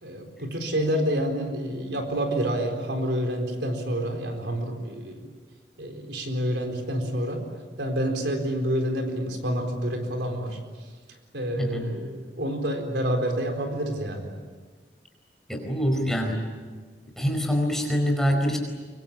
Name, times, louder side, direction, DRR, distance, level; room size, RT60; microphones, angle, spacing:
voice 1, 0.0-5.2 5.8-7.4 7.8-10.6 11.3-14.3, equal, 75° right, 4 dB, 4.2 m, -28 dB
voice 2, 11.6-11.9 15.5-16.5 17.2-18.6, equal, ahead, 2 dB, 4.8 m, -25 dB
24.5 x 24.5 x 8.7 m, 1.4 s
head